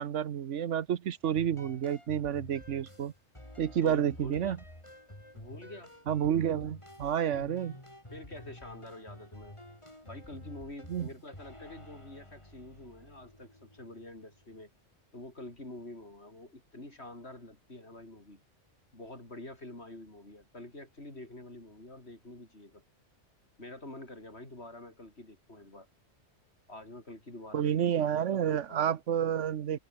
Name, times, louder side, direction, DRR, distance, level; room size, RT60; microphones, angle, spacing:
voice 1, 0.0-3.1 3.6-4.6 6.1-7.7 10.9-11.1 27.5-29.8, right 9 dB, 85° right, 1.2 m, -30 dB
sound 1, 1.2-14.6, left 1 dB, 25° left, 5.4 m, -50 dB
voice 2, 3.8-4.6 5.3-5.9 7.3-7.4 8.1-9.6 10.0-14.7 15.1-18.4 18.9-22.8 23.6-25.9 26.7-29.0, left 2 dB, 65° left, 6.2 m, -47 dB
omnidirectional pair, 1.2 m